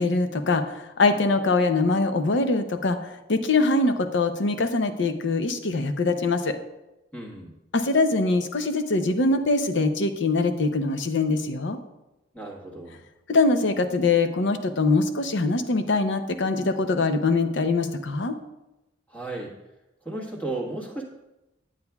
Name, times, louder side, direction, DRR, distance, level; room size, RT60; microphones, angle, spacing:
voice 1, 0.0-6.6 7.7-11.8 13.3-18.4, left 3 dB, 70° left, 8 dB, 0.6 m, -23 dB
voice 2, 7.1-7.5 12.3-13.0 19.1-19.5 20.0-21.0, right 2 dB, 10° left, -1 dB, 1.4 m, -34 dB
9.8 x 8.2 x 2.3 m, 0.97 s
head